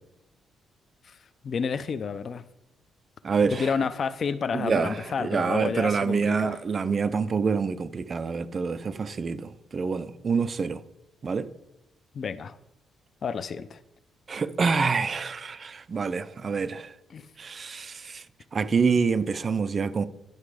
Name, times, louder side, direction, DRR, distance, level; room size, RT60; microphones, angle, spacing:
voice 1, 1.4-2.4 3.5-6.5 12.1-12.6 13.2-13.8 17.1-17.3, left 6 dB, 40° left, 0.5 m, -30 dB
voice 2, 3.2-3.7 4.5-10.8 11.2-11.5 14.3-16.9 17.4-18.2 18.5-20.1, right 5 dB, 35° right, 0.5 m, -26 dB
10.5 x 6.7 x 4.9 m
cardioid pair, 140°, 0 cm